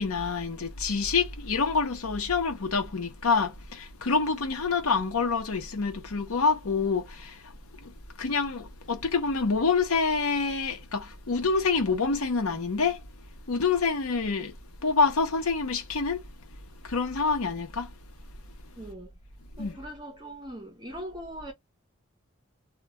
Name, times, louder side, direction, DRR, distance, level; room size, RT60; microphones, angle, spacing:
voice 1, 0.0-7.5 7.8-13.0 13.5-14.6 14.8-16.2 16.8-17.9 19.6-19.8, left 4 dB, 90° left, 0.7 m, -27 dB
voice 2, 18.8-19.1 19.6-21.5, equal, 20° right, 0.7 m, -40 dB
2.2 x 2.2 x 2.9 m
head